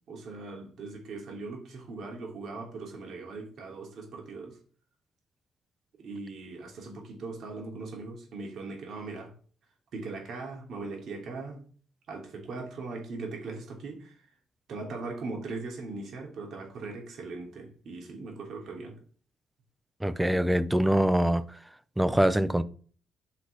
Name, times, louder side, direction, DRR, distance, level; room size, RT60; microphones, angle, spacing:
voice 1, 0.1-4.6 6.0-9.3 9.9-11.6 12.1-14.2 14.7-19.0, right 3 dB, 65° right, 3.0 m, -39 dB
voice 2, 20.0-21.4 22.0-22.6, right 1 dB, 5° right, 0.7 m, -24 dB
10.5 x 4.0 x 5.0 m
cardioid pair, 90°, 0 cm